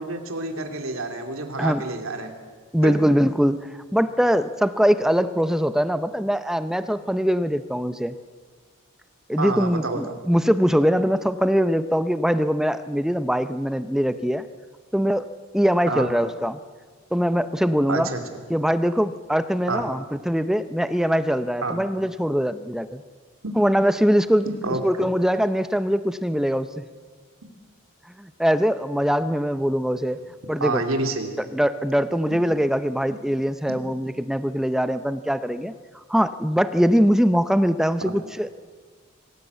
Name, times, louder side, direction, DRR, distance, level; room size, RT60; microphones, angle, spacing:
voice 1, 0.0-2.3 2.8-2.9 9.4-10.2 15.9-16.1 17.9-18.2 19.7-19.8 21.6-21.8 24.5-25.1 30.6-31.4 38.0-38.1, right 2 dB, 85° right, 5 dB, 2.8 m, -28 dB
voice 2, 2.7-8.2 9.3-14.5 14.9-15.3 15.5-16.6 17.1-18.1 18.5-23.0 23.6-24.5 24.8-26.8 28.2-30.2 30.5-30.8 31.4-35.7 36.1-38.6, equal, ahead, 12 dB, 0.6 m, -22 dB
25.0 x 16.0 x 8.2 m, 1.5 s
head